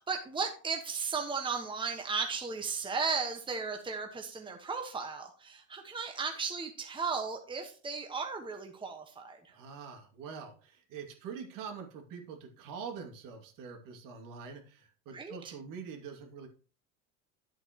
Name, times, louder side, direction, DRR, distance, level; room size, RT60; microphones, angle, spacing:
voice 1, 0.0-9.5 15.1-15.4, right 5 dB, 15° right, 3 dB, 1.3 m, -35 dB
voice 2, 9.5-16.5, right 6 dB, 60° right, 3 dB, 2.5 m, -44 dB
11.0 x 7.8 x 3.0 m, 0.39 s
supercardioid pair, 115°, 36 cm